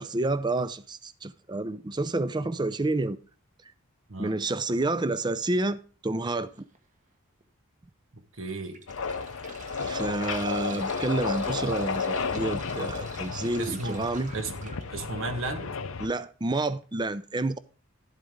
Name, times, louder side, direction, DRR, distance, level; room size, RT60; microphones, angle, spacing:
voice 1, 0.0-3.2 4.2-6.7 9.8-14.3 16.0-17.6, right 2 dB, 20° right, 0.5 m, -29 dB
sound 1, 6.5-6.8 7.4-7.5 8.4-14.8 16.4-16.6 16.8-16.9, right 4 dB, 35° right, 1.4 m, -47 dB
voice 2, 8.1-8.8 13.6-15.8, right 2 dB, 65° right, 1.5 m, -35 dB
sound 2, 8.9-16.1, left 5 dB, 70° left, 0.7 m, -32 dB
12.0 x 8.2 x 3.7 m
head